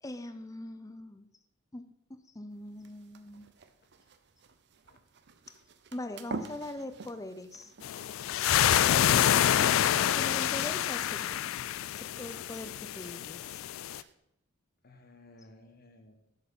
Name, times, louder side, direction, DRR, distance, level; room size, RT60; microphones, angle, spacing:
voice 1, 0.0-1.3 1.7-3.5 5.9-7.7 8.9-11.4 12.0-13.6, left 1 dB, 15° left, 10 dB, 0.5 m, -42 dB
sound 1, 2.5-14.1, right 3 dB, 55° right, 0.6 m, -49 dB
sound 2, 7.8-14.0, left 11 dB, 75° left, 0.3 m, -27 dB
voice 2, 14.8-16.2, left 2 dB, 50° left, 6 dB, 1.1 m, -56 dB
8.1 x 7.2 x 5.3 m, 0.83 s
head